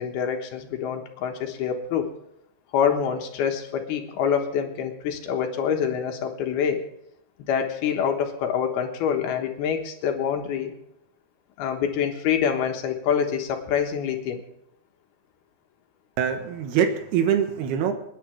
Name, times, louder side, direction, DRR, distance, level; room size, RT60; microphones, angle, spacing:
voice 1, 0.0-2.1 2.7-6.8 7.5-10.7 11.6-14.4, left 7 dB, 75° left, 4 dB, 3.3 m, -26 dB
voice 2, 16.2-17.9, right 8 dB, 80° right, 6 dB, 3.4 m, -23 dB
28.0 x 10.0 x 3.5 m, 0.80 s
omnidirectional pair, 4.6 m